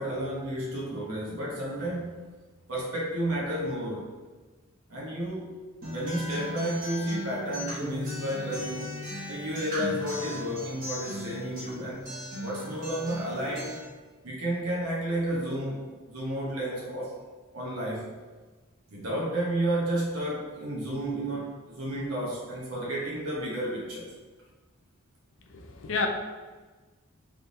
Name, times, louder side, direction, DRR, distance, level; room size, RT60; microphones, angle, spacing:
voice 1, 0.0-2.2 2.7-4.1 4.9-5.5 5.9-9.0 9.3-12.1 12.4-13.8 14.2-17.2 17.5-18.1 18.9-24.1, right 1 dB, 80° right, -5 dB, 1.2 m, -32 dB
Acoustic guitar, 5.8-13.8, left 1 dB, 40° right, 1.4 m, -36 dB
voice 2, 25.5-26.1, left 4 dB, 60° left, 3 dB, 0.5 m, -30 dB
3.6 x 3.3 x 4.0 m, 1.3 s
head